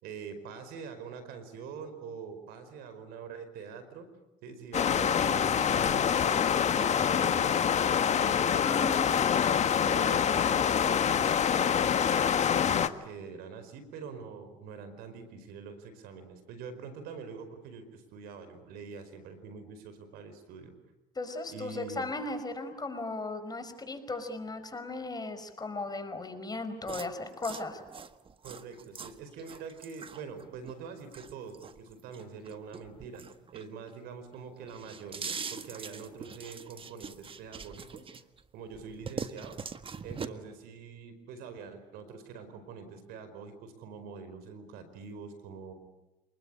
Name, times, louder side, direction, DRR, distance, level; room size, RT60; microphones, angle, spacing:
voice 1, 0.0-4.1 4.4-8.9 9.8-20.7 21.5-22.1 28.4-33.2 33.5-38.2 38.5-39.6 40.0-45.7, right 5 dB, 75° right, 11 dB, 4.7 m, -44 dB
sound 1, 4.7-12.9, left 8 dB, 45° left, 1.6 m, -26 dB
voice 2, 7.1-7.5 8.6-9.1 21.2-27.8, left 2 dB, 25° left, 8 dB, 5.2 m, -37 dB
sound 2, 26.9-34.0 34.3-38.4 38.7-40.3, right 5 dB, 35° right, 1.6 m, -42 dB
28.0 x 21.0 x 9.9 m, 0.98 s
supercardioid pair, 75°, 16 cm